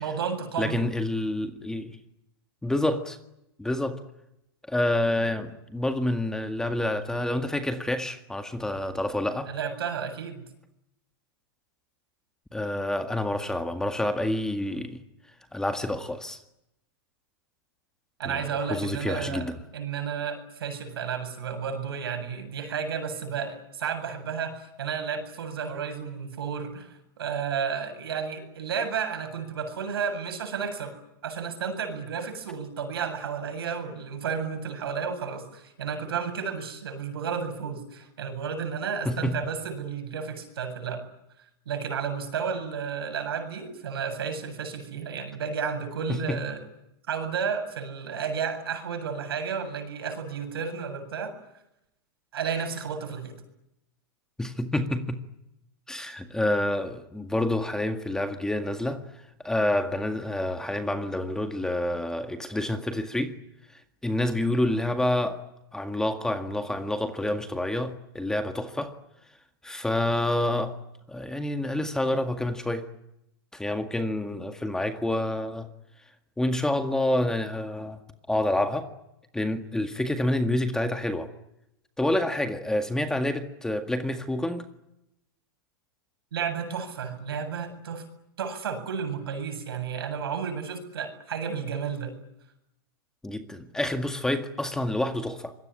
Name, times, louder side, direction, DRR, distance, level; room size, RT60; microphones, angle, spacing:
voice 1, 0.0-0.8 9.5-10.4 18.2-19.5 19.7-30.9 31.2-41.1 41.7-46.6 47.1-51.3 52.3-53.4 86.3-88.0 88.4-92.1, right 6 dB, 80° right, 7 dB, 8.0 m, -32 dB
voice 2, 0.6-2.0 2.6-3.2 3.6-4.0 4.7-9.5 12.5-15.0 15.5-16.4 18.2-19.6 39.1-39.3 46.1-46.4 54.4-55.2 55.9-59.0 59.4-63.4 64.0-65.4 65.7-69.0 69.6-70.8 71.1-72.9 73.5-75.7 76.4-78.0 78.3-78.9 79.3-81.3 82.0-84.7 93.2-95.5, left 1 dB, 5° left, 8 dB, 1.9 m, -28 dB
26.0 x 22.0 x 10.0 m, 0.84 s
hypercardioid pair, 135°, 12 cm